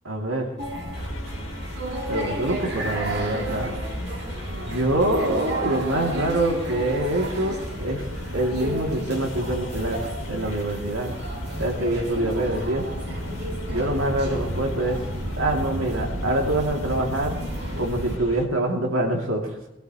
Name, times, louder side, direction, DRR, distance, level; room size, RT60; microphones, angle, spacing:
voice 1, 0.0-0.5 1.0-1.3 2.1-3.8 4.6-8.1 8.3-10.0 10.3-11.1 11.6-12.9 13.7-15.0 15.4-17.4 17.8-19.6, right 1 dB, 85° right, 0 dB, 3.0 m, -25 dB
sound 1, 0.6-18.2, right 1 dB, 55° right, 2.1 m, -32 dB
sound 2, 0.9-18.5, left 1 dB, 80° left, 2.3 m, -39 dB
22.5 x 15.5 x 3.2 m, 0.92 s
head